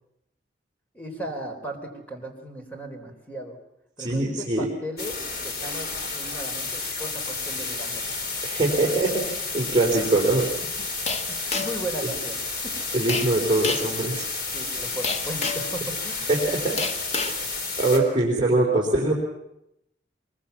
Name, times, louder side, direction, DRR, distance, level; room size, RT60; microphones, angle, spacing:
voice 1, 0.9-3.6 4.0-8.1 11.3-12.7 14.5-16.3, right 1 dB, 10° left, 3 dB, 3.8 m, -36 dB
voice 2, 4.0-4.7 8.4-10.5 12.9-14.2 16.3-16.8 17.1-17.3 17.8-19.1, right 2 dB, 25° right, -3 dB, 3.9 m, -23 dB
sound 1, 5.0-18.0, left 3 dB, 55° left, 4.0 m, -31 dB
sound 2, 11.1-11.9 13.1-13.3 13.6-13.9 15.0-15.7 16.8-17.4, left 4 dB, 35° left, 1.4 m, -28 dB
24.0 x 22.0 x 7.2 m, 0.84 s
head